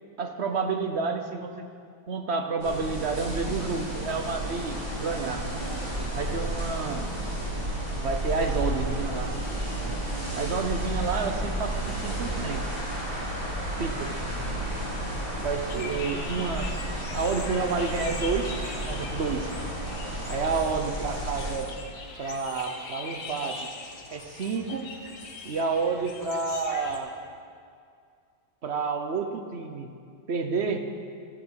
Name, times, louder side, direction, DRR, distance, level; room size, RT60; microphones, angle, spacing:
voice 1, 0.2-1.7 2.1-5.5 6.2-7.0 7.9-9.3 10.3-12.7 13.8-14.1 15.3-16.7 17.1-18.6 18.8-19.5 20.3-21.7 22.2-23.7 24.1-24.9 25.4-27.1 28.6-29.9 30.3-30.9, right 4 dB, 55° right, 5 dB, 0.7 m, -30 dB
sound 1, 2.6-21.5, right 1 dB, 20° right, 4.4 m, -32 dB
sound 2, 15.7-27.0, left 4 dB, 65° left, 2.0 m, -41 dB
13.5 x 10.0 x 8.1 m, 2.3 s
omnidirectional pair, 2.2 m